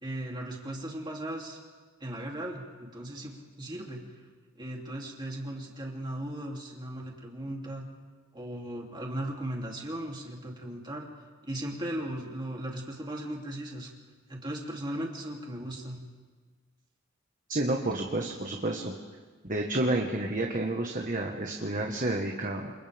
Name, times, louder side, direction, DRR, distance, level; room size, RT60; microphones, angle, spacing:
voice 1, 0.0-1.6 2.0-4.0 4.6-7.8 8.3-11.1 11.4-13.9 14.3-16.0, right 1 dB, 20° right, -1 dB, 3.1 m, -37 dB
voice 2, 17.5-18.9 19.4-22.7, right 2 dB, 40° right, 1 dB, 1.5 m, -30 dB
28.5 x 28.5 x 3.6 m, 1.5 s
head